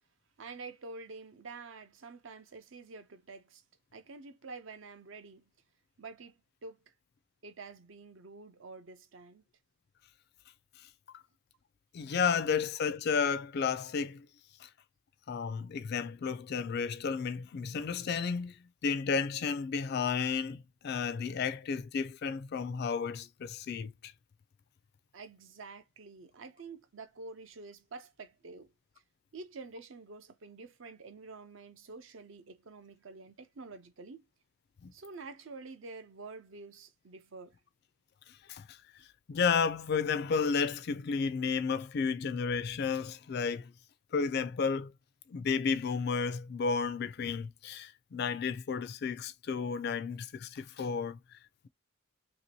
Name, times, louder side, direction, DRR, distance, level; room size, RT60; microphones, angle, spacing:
voice 1, 0.4-3.6 3.9-5.4 6.0-6.4 6.6-6.8 7.4-9.4 25.1-28.7 29.3-34.2 34.9-37.5, right 3 dB, 65° right, 0.6 m, -48 dB
voice 2, 11.9-14.3 14.6-14.7 15.3-18.5 18.8-24.1 34.8-34.9 38.5-38.6 39.3-43.7 44.1-44.9 45.3-51.2, left 5 dB, 50° left, 0.3 m, -32 dB
2.9 x 2.7 x 2.9 m
head